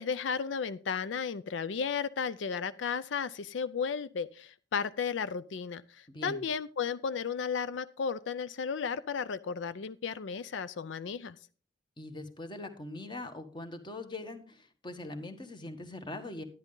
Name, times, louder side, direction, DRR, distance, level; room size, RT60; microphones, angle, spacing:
voice 1, 0.0-11.4, left 6 dB, 90° left, 15 dB, 0.5 m, -34 dB
voice 2, 6.1-6.4 12.0-16.4, left 2 dB, 25° left, 8 dB, 1.3 m, -42 dB
11.0 x 10.5 x 3.8 m, 0.39 s
head